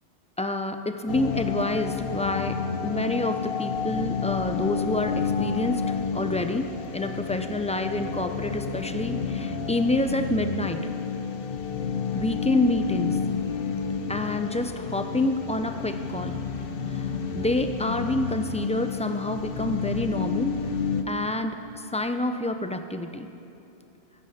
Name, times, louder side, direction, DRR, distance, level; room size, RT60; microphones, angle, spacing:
voice 1, 0.4-10.8 12.1-13.2 14.1-16.4 16.9-17.1 17.3-20.6 21.1-23.3, left 1 dB, 10° left, 7 dB, 0.4 m, -28 dB
sound 1, 1.1-21.0, left 6 dB, 55° left, 1.0 m, -30 dB
22.0 x 9.9 x 5.8 m, 2.9 s
omnidirectional pair, 1.2 m